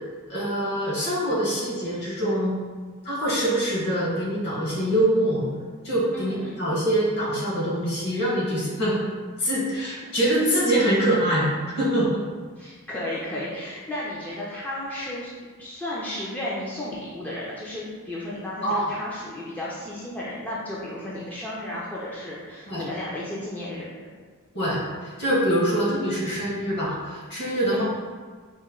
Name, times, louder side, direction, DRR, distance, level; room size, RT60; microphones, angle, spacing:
voice 1, 0.3-2.6 3.0-5.4 5.8-9.0 9.4-12.2 18.6-18.9 22.7-22.8 24.5-27.8, right 1 dB, 50° left, -6 dB, 1.3 m, -24 dB
voice 2, 6.1-6.6 12.6-15.3 15.6-23.9 27.7-27.8, left 1 dB, 5° left, -8 dB, 0.5 m, -33 dB
4.1 x 2.2 x 3.6 m, 1.5 s
head